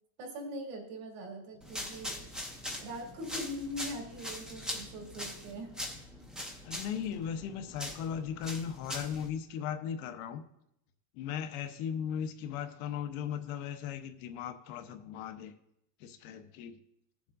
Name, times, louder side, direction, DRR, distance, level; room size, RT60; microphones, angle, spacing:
voice 1, 0.2-2.2 2.8-5.7, equal, 75° right, 0 dB, 3.2 m, -41 dB
sound 1, 1.6-9.3, left 1 dB, ahead, 0.6 m, -42 dB
voice 2, 6.6-10.4 11.1-15.5 16.0-16.8, left 8 dB, 65° left, 7 dB, 1.0 m, -37 dB
16.5 x 7.4 x 2.6 m, 0.79 s
cardioid pair, 170°, 47 cm